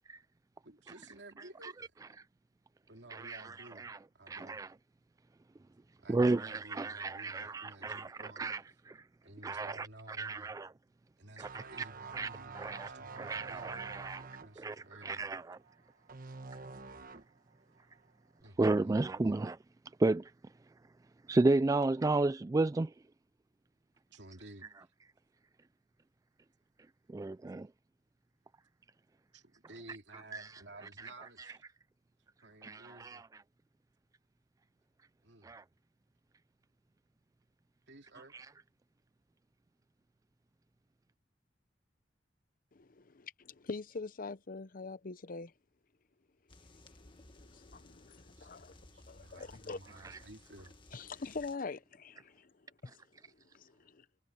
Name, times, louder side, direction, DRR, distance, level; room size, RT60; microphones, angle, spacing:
voice 1, 0.6-1.9 2.9-4.6 6.0-8.4 9.2-10.5 11.2-14.0 14.4-15.4 18.4-19.4 24.1-24.7 29.3-31.6 32.4-33.2 35.2-35.5 37.9-38.4 48.4-50.8, right 2 dB, 75° right, 2.7 m, -54 dB
voice 2, 3.1-4.0 4.3-4.7 6.1-8.6 8.9-9.0 9.4-10.7 11.4-11.6 12.1-12.3 12.5-12.9 13.2-14.3 14.6-15.6 18.6-19.6 20.0-20.3 21.3-22.9 27.1-27.7 30.3-30.5 31.0-31.1 32.6-33.3 35.4-35.6 38.3-38.5, right 2 dB, 20° right, 0.3 m, -32 dB
sound 1, 11.4-17.4 17.8-18.0, right 4 dB, 50° right, 1.3 m, -48 dB
voice 3, 42.7-45.5 46.7-50.1 50.9-54.1, left 4 dB, 50° left, 0.7 m, -45 dB
sound 2, 46.5-51.6, left 2 dB, 30° left, 1.8 m, -58 dB
head